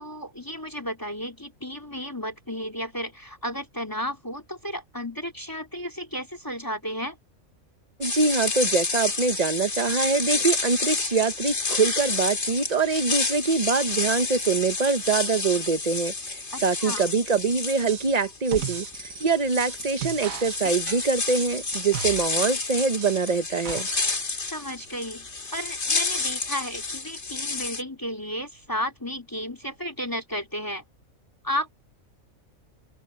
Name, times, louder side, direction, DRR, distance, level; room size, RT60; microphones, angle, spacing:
voice 1, 0.0-7.2 16.5-17.0 24.5-30.8 31.4-31.7, equal, 15° left, 3.4 m, -33 dB
sound 1, 8.0-27.8, left 4 dB, 55° left, 2.4 m, -30 dB
voice 2, 8.0-23.9, right 4 dB, 35° right, 0.9 m, -24 dB
sound 2, 17.9-18.2 18.4-22.6 23.0-24.2 24.4-24.5, right 8 dB, 75° right, 1.6 m, -36 dB
open air
omnidirectional pair, 1.4 m